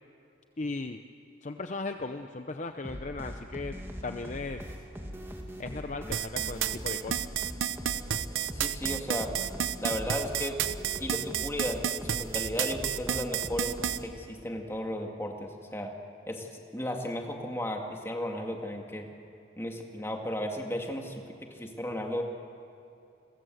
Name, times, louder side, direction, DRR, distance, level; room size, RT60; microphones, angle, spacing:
voice 1, 0.6-1.0 1.4-3.8 4.0-4.7 5.6-7.4, left 3 dB, 35° left, 7 dB, 0.7 m, -37 dB
sound 1, 2.8-14.4, equal, 10° right, 2.3 m, -41 dB
sound 2, 6.1-14.0, right 10 dB, 80° right, 0.8 m, -30 dB
voice 2, 8.5-9.3 9.8-10.6 11.0-13.7 14.0-15.9 16.3-19.1 19.6-22.2, left 1 dB, 10° left, 2 dB, 2.2 m, -35 dB
29.5 x 22.0 x 7.9 m, 2.7 s
head